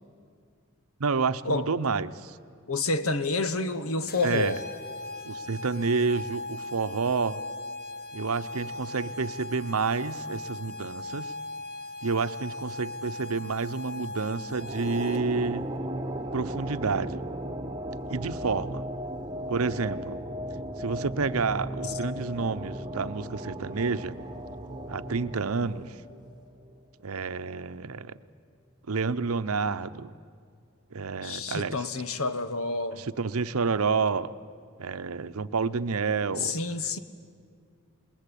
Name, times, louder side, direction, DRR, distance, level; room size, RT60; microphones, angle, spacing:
voice 1, 1.0-2.4 4.2-4.6 5.2-7.4 8.1-11.3 12.0-15.7 16.3-17.3 18.1-18.8 19.5-20.2 20.8-24.2 24.9-26.0 27.0-28.2 28.9-30.1 30.9-31.8 33.0-34.3 34.8-36.5, right 4 dB, 90° right, 13 dB, 0.8 m, -29 dB
voice 2, 2.7-4.6 23.2-23.3 31.2-33.0 36.4-37.0, left 3 dB, 85° left, 11 dB, 1.3 m, -29 dB
sound 1, 4.1-15.5, left 2 dB, 45° left, 2.0 m, -39 dB
sound 2, 14.4-27.0, right 1 dB, 20° right, 1.2 m, -36 dB
27.0 x 21.0 x 10.0 m, 2.2 s
head